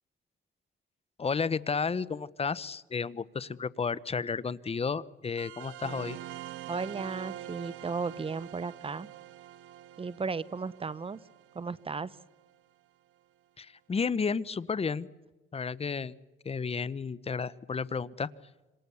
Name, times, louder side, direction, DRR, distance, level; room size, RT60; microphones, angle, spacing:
voice 1, 1.2-6.2 13.6-15.1 15.5-16.2 16.4-18.3, left 5 dB, 30° left, 19 dB, 0.9 m, -32 dB
sound 1, 5.4-12.5, right 12 dB, 80° right, 0.9 m, -45 dB
voice 2, 6.7-9.1 10.0-11.2 11.5-12.1, right 4 dB, 30° right, 20 dB, 0.8 m, -35 dB
27.0 x 26.5 x 7.1 m, 1.1 s
cardioid pair, 90°, 20 cm